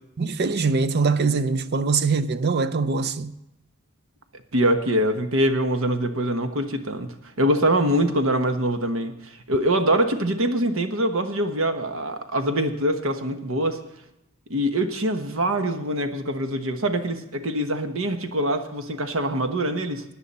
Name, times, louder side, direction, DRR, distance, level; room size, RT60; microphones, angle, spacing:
voice 1, 0.2-3.3, right 4 dB, 50° right, 0.5 m, -23 dB
voice 2, 4.5-13.8 14.5-20.0, right 1 dB, 65° right, 1.2 m, -24 dB
17.0 x 10.0 x 4.2 m
head